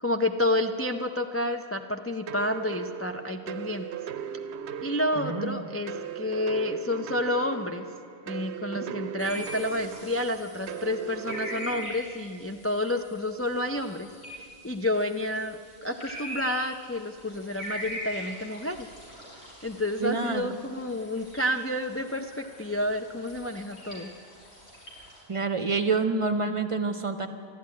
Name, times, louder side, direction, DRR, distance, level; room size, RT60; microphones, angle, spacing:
voice 1, 0.0-3.8 4.8-7.9 8.3-14.1 14.6-18.9 19.6-24.1, left 1 dB, 25° left, 4 dB, 0.3 m, -30 dB
sound 1, 2.3-11.9, right 8 dB, 80° right, 0.9 m, -38 dB
voice 2, 5.1-5.7 8.9-9.0 9.3-9.4 20.0-20.6 25.3-27.3, right 4 dB, 35° right, 8 dB, 0.7 m, -28 dB
sound 2, 9.2-25.2, equal, 80° left, 5.0 m, -43 dB
13.0 x 11.5 x 9.5 m, 2.2 s
omnidirectional pair, 1.1 m